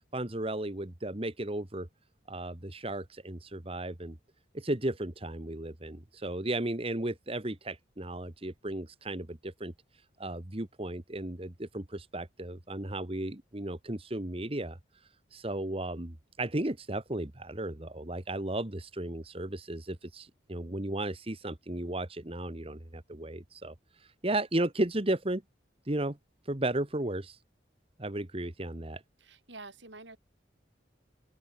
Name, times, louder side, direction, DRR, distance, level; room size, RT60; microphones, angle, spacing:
voice 1, 0.1-1.9 2.3-4.2 4.5-9.7 10.2-14.8 15.3-25.4 25.8-26.2 26.4-27.4 28.0-29.0, right 1 dB, 30° right, 1.5 m, -34 dB
voice 2, 29.2-30.2, right 3 dB, 70° right, 7.8 m, -48 dB
open air
head